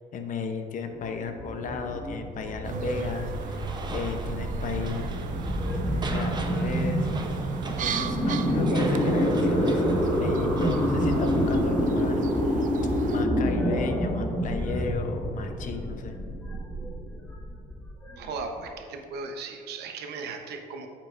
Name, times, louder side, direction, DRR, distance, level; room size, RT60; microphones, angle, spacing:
voice 1, 0.1-5.1 5.4-7.1 7.7-9.8 10.1-12.2 12.5-12.6 13.0-16.2, left 4 dB, 50° left, 6 dB, 0.8 m, -34 dB
sound 1, 0.9-18.7, equal, 10° left, 1.6 m, -28 dB
sound 2, 2.6-13.3, right 8 dB, 50° right, 0.4 m, -36 dB
sound 3, 2.9-11.7, right 3 dB, 25° right, 0.7 m, -42 dB
voice 2, 18.2-20.9, right 4 dB, 75° right, 4 dB, 0.9 m, -37 dB
9.0 x 7.5 x 2.5 m, 2.4 s
cardioid pair, 110°, 17 cm